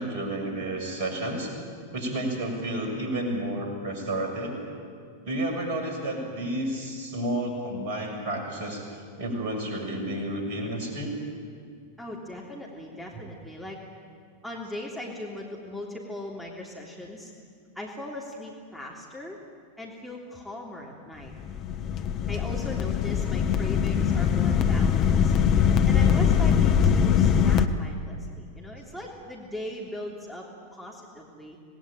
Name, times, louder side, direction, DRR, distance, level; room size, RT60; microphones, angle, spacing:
voice 1, 0.0-1.5 1.9-4.6 5.2-8.8 9.2-11.1, right 1 dB, 45° right, 2 dB, 6.9 m, -31 dB
voice 2, 12.0-13.8 14.4-17.3 17.7-19.4 19.8-21.3 22.3-25.3 25.8-30.4 30.7-31.6, left 1 dB, ahead, -2 dB, 3.3 m, -39 dB
sound 1, 21.3-27.7, left 7 dB, 35° left, 1.2 m, -22 dB
27.0 x 19.5 x 9.1 m, 2.1 s
figure-of-eight pair, 90°, 0 cm